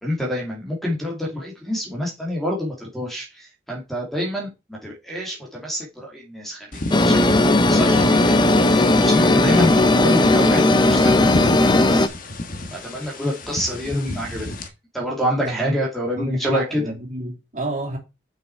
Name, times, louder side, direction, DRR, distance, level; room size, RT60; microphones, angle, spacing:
voice 1, 0.0-10.6 10.9-12.1 12.7-14.5 14.9-16.8, equal, ahead, 2.4 m, -27 dB
sound 1, 6.7-14.7, left 2 dB, 50° left, 1.3 m, -32 dB
sound 2, 6.9-12.1, left 2 dB, 25° left, 0.7 m, -16 dB
voice 2, 15.4-15.8 16.2-18.0, right 2 dB, 45° right, 3.2 m, -30 dB
6.9 x 6.2 x 4.6 m
head